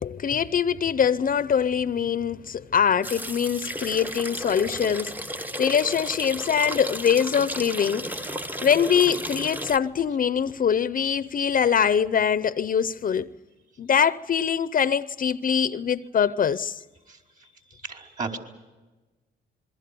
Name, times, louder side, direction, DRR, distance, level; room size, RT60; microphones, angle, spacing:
voice 1, 0.0-5.1 5.6-8.3 8.6-13.3 13.8-16.8, left 7 dB, 45° left, 0.7 m, -23 dB
sound 1, 3.0-9.8, equal, 10° right, 0.8 m, -34 dB
voice 2, 17.8-18.4, right 4 dB, 40° right, 4.4 m, -33 dB
27.0 x 22.5 x 6.9 m
cardioid pair, 90°, 20 cm